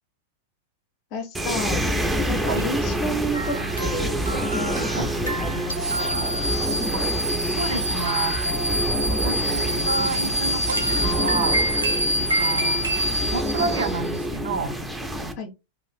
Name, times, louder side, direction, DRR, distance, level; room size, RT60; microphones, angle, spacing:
voice 1, 1.1-1.9 2.3-6.2 15.4-15.5, equal, 40° left, 0.6 m, -32 dB
sound 1, 1.3-15.3, equal, 5° right, 0.5 m, -27 dB
sound 2, 3.3-13.3, right 2 dB, 85° right, 0.8 m, -32 dB
sound 3, 5.7-14.2, equal, 90° left, 0.5 m, -26 dB
voice 2, 7.6-8.4 9.0-11.6 12.2-12.8 13.3-14.7, right 4 dB, 65° right, 0.4 m, -29 dB
2.5 x 2.5 x 3.3 m
figure-of-eight pair, 90°, 0 cm